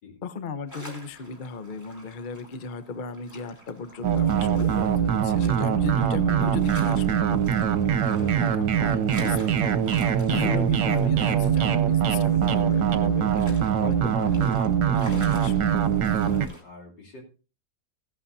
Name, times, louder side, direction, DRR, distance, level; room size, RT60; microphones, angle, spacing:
voice 1, 0.2-7.4 8.2-9.7 10.3-15.7, left 5 dB, 45° left, 12 dB, 0.6 m, -36 dB
sound 1, 0.7-16.6, equal, 10° left, 2.8 m, -46 dB
sound 2, 4.0-16.5, right 8 dB, 70° right, 1.5 m, -23 dB
voice 2, 16.1-17.2, left 2 dB, 65° left, -2 dB, 3.6 m, -47 dB
16.5 x 11.5 x 2.7 m, 0.34 s
omnidirectional pair, 2.0 m